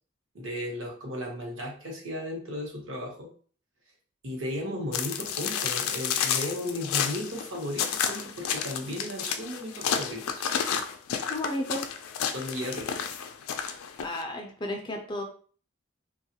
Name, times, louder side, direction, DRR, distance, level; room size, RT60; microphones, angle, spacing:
voice 1, 0.3-3.3 4.2-10.4 12.3-12.9, left 1 dB, 70° right, -1 dB, 0.9 m, -35 dB
sound 1, 4.9-14.2, left 8 dB, 90° left, 0.4 m, -31 dB
voice 2, 11.3-11.9 14.0-15.2, left 1 dB, 20° left, 2 dB, 0.4 m, -33 dB
2.9 x 2.3 x 2.8 m, 0.44 s
head